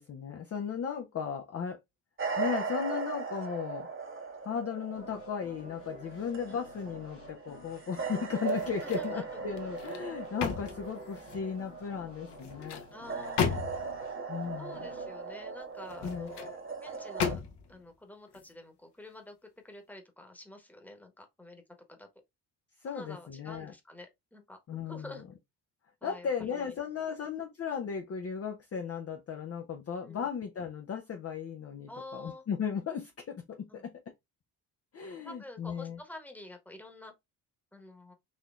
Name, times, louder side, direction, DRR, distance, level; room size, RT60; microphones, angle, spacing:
voice 1, 0.0-1.8 2.4-3.9 4.4-12.9 14.3-14.8 16.0-16.6 22.8-23.7 24.7-25.1 26.0-33.9 34.9-36.0, left 7 dB, 30° left, 0.6 m, -36 dB
sound 1, 2.2-17.4, right 5 dB, 25° right, 1.0 m, -39 dB
sound 2, 4.9-16.4, left 5 dB, 70° left, 1.4 m, -54 dB
sound 3, 8.4-9.2 9.6-11.5 12.3-14.0 15.8-16.5 17.2-17.8 18.3-18.5, left 7 dB, 55° left, 0.9 m, -35 dB
voice 2, 8.6-9.8 12.9-13.6 14.6-16.4 16.8-17.4 17.7-21.6 21.9-22.1 22.9-24.6 24.8-25.2 26.0-26.7 30.0-30.3 31.9-32.4 33.7-33.8 35.2-37.1 37.7-38.1, left 2 dB, 5° left, 1.2 m, -48 dB
4.1 x 2.7 x 2.4 m
hypercardioid pair, 45°, 50 cm